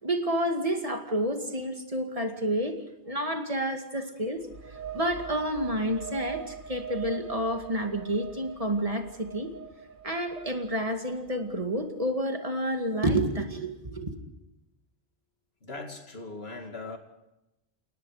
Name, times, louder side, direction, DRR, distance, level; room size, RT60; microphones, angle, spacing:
voice 1, 0.0-2.8 3.1-4.4 4.9-9.5 10.0-14.1, right 1 dB, 35° right, 5 dB, 2.4 m, -29 dB
sound 1, 4.4-12.0, right 8 dB, 55° right, 1.4 m, -42 dB
voice 2, 15.6-17.0, left 3 dB, 75° left, 4 dB, 2.8 m, -39 dB
29.5 x 18.5 x 5.0 m, 0.90 s
omnidirectional pair, 1.1 m